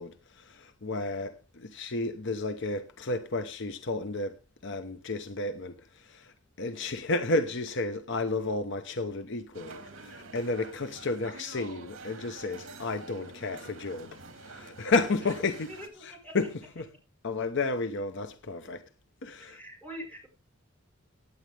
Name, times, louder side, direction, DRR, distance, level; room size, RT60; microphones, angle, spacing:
voice 1, 0.0-4.4 4.6-15.7 16.0-16.9 17.2-18.8 19.2-19.6, left 3 dB, 60° left, 0.9 m, -32 dB
sound 1, 9.5-15.9, right 3 dB, 70° right, 2.7 m, -47 dB
voice 2, 15.7-16.4 19.4-20.3, equal, 10° left, 4.9 m, -44 dB
17.0 x 9.6 x 3.4 m
head